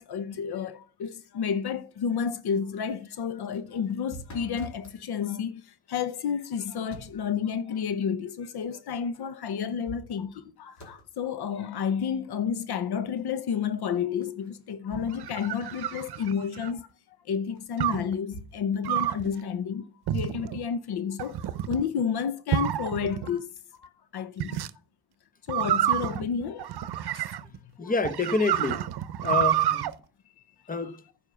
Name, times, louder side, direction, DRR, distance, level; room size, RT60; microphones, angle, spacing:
voice 1, 0.0-16.9 17.2-23.5 23.8-24.7 25.5-26.7 27.0-27.2 27.8-27.9 30.7-30.9, left 7 dB, 70° left, 0.8 m, -31 dB
sound 1, 3.4-5.0 6.5-7.3 9.1-9.2 9.6-10.5 10.8-11.1 14.2-15.3 15.6-15.7 17.5-18.5, right 1 dB, 45° left, 3.3 m, -46 dB
sound 2, 15.0-16.8 17.8-18.1 18.8-19.3 20.1-20.6 21.2-21.8 22.5-23.3 24.4-24.7 25.5-27.6 28.0-29.9, right 12 dB, 75° right, 0.7 m, -28 dB
voice 2, 27.8-28.8 29.2-29.9 30.7-31.0, left 3 dB, 20° left, 1.1 m, -27 dB
9.9 x 5.6 x 6.7 m
cardioid pair, 90°, 40 cm